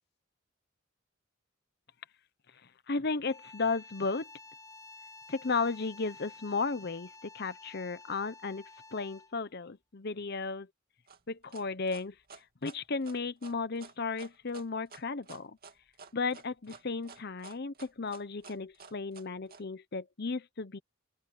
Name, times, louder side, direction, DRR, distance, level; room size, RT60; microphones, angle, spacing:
voice 1, 2.9-4.3 5.3-8.6 8.9-10.7 11.3-15.6 16.1-20.8, left 4 dB, 50° left, 0.8 m, -34 dB
sound 1, 3.2-9.5, left 3 dB, 15° left, 6.4 m, -52 dB
sound 2, 11.1-19.6, right 5 dB, 45° right, 2.6 m, -52 dB
open air
head